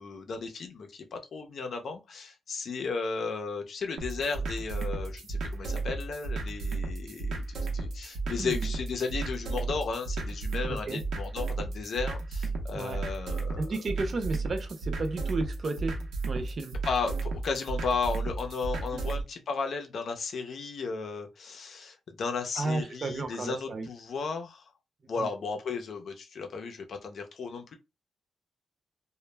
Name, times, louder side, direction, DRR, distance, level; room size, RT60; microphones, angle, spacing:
voice 1, 0.0-13.7 16.8-24.6 25.1-27.7, left 4 dB, 60° left, 0.5 m, -34 dB
sound 1, 4.0-19.2, right 3 dB, 80° right, 0.7 m, -34 dB
voice 2, 10.7-11.0 12.7-13.0 13.6-16.8 18.9-19.0 22.6-23.9 25.2-25.3, right 3 dB, 40° right, 0.4 m, -33 dB
2.2 x 2.0 x 3.2 m
cardioid pair, 125°, 0 cm